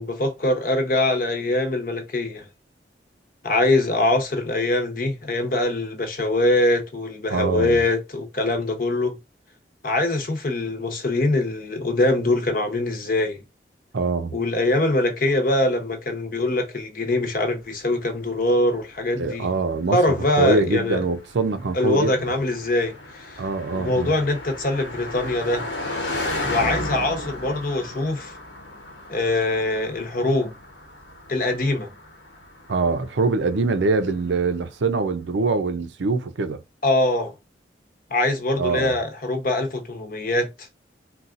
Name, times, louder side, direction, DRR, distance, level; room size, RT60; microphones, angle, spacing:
voice 1, 0.0-2.5 3.4-9.2 9.8-13.4 14.3-19.5 19.9-21.0 21.7-23.4 23.7-25.7 26.4-28.4 29.1-30.5 31.3-31.9 36.8-37.3 38.1-40.7, left 2 dB, 50° left, 0.9 m, -23 dB
voice 2, 7.3-7.8 13.9-14.4 19.1-20.0 20.4-22.1 23.4-24.1 32.7-36.6 38.6-38.9, right 3 dB, 85° right, 0.5 m, -23 dB
Car passing by, 18.1-34.6, left 1 dB, 80° left, 1.1 m, -35 dB
4.0 x 2.3 x 2.5 m
head